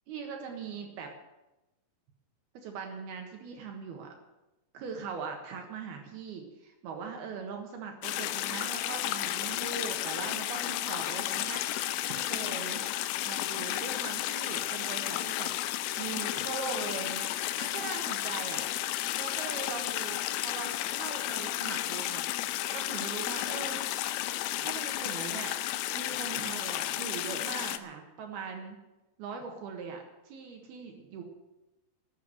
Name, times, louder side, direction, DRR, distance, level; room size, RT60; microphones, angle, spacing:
voice 1, 0.1-1.1 2.5-4.1 4.7-11.6 12.1-12.9 13.2-18.6 19.2-22.2 22.7-23.8 24.6-25.6 25.9-28.8 29.2-31.2, right 5 dB, 75° right, 3 dB, 3.3 m, -40 dB
sound 1, 8.0-27.8, left 14 dB, 80° left, 2.4 m, -33 dB
12.5 x 9.3 x 9.4 m, 1.0 s
omnidirectional pair, 4.7 m